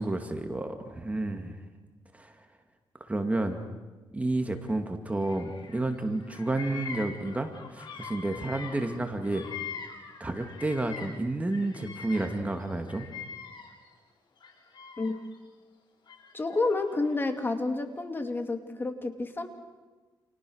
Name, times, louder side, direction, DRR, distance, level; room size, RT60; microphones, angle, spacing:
voice 1, 0.0-1.6 2.1-2.4 3.0-3.6 4.1-9.5 10.2-13.1, right 2 dB, 15° right, 5 dB, 2.3 m, -31 dB
Bird vocalization bird call bird song, 5.1-5.9 6.1-11.2 11.5-13.9 14.4-15.3 16.1-17.1, left 6 dB, 60° left, 6.2 m, -43 dB
voice 2, 16.3-19.5, left 3 dB, 25° left, 6 dB, 2.8 m, -30 dB
30.0 x 28.5 x 6.5 m, 1.3 s
cardioid pair, 105°, 9 cm